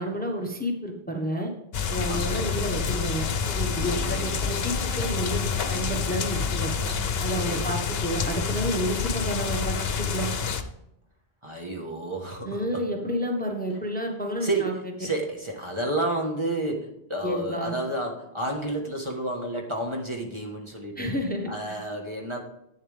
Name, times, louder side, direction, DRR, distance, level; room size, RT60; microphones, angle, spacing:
voice 1, 0.0-1.5 1.9-6.7 7.2-9.7 10.1-10.3 12.4-14.7 17.2-17.7 21.0-21.8, equal, 10° left, 2 dB, 1.2 m, -30 dB
sound 1, 1.7-10.6, left 6 dB, 65° left, 1.0 m, -28 dB
sound 2, 1.9-8.1, left 2 dB, 55° right, 3.5 m, -44 dB
voice 2, 2.1-2.6 3.8-4.1 7.4-7.8 11.4-12.8 14.4-21.1 21.5-22.4, right 2 dB, 25° right, 0 dB, 1.5 m, -31 dB
11.0 x 8.8 x 3.5 m, 0.86 s
omnidirectional pair, 1.1 m